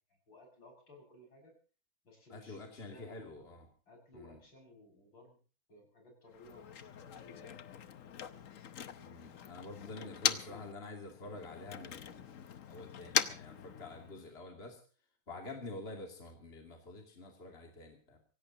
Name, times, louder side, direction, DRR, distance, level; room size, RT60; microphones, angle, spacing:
voice 1, 0.3-1.6 2.0-3.4 3.9-5.4 5.7-7.7 9.8-10.7, left 1 dB, 75° left, 2 dB, 7.3 m, -58 dB
voice 2, 2.3-3.7 4.1-4.4 9.0-14.8 15.3-18.2, left 2 dB, 30° left, 2 dB, 3.0 m, -48 dB
Motor vehicle (road), 6.3-10.7 11.0-14.3, left 8 dB, 50° left, 1.1 m, -39 dB
25.5 x 17.0 x 2.9 m, 0.39 s
omnidirectional pair, 2.1 m